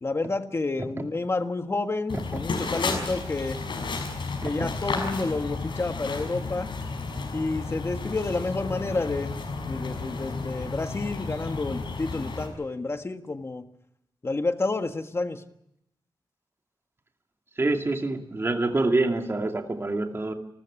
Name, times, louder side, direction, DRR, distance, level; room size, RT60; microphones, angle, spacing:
voice 1, 0.0-3.6 4.4-6.7 7.3-9.4 9.7-13.7 14.2-15.4, left 3 dB, 30° left, 8 dB, 1.5 m, -30 dB
sound 1, 2.1-12.5, left 3 dB, 80° left, 6.1 m, -32 dB
voice 2, 17.6-20.3, right 2 dB, 30° right, 4 dB, 2.5 m, -26 dB
28.5 x 14.0 x 8.8 m, 0.80 s
wide cardioid pair, 130°, 8 cm